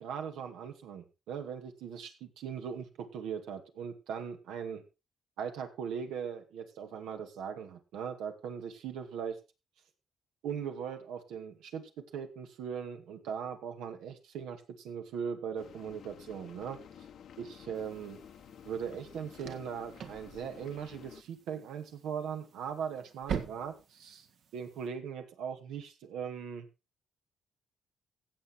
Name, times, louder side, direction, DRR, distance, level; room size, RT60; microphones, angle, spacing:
voice 1, 0.0-4.8 5.4-9.4 10.4-16.8 17.4-18.2 18.6-24.3 24.5-26.7, right 7 dB, 90° right, 5 dB, 2.2 m, -39 dB
sound 1, 15.6-21.2, left 8 dB, 70° left, 1.1 m, -52 dB
sound 2, 17.7-24.9, right 7 dB, 70° right, 1.9 m, -44 dB
15.5 x 7.8 x 4.4 m, 0.28 s
cardioid pair, 90°, 0 cm